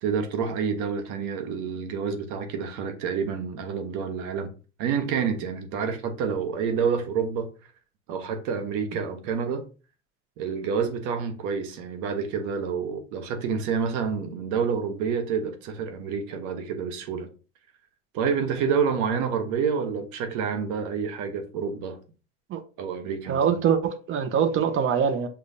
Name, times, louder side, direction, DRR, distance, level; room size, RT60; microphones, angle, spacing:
voice 1, 0.0-4.5 4.8-7.5 8.1-9.6 10.4-17.3 18.1-22.0 22.8-23.4, right 6 dB, 70° right, 1.0 m, -28 dB
voice 2, 23.3-25.3, right 7 dB, 40° right, 0.7 m, -23 dB
6.7 x 2.4 x 2.6 m
supercardioid pair, 105°, 32 cm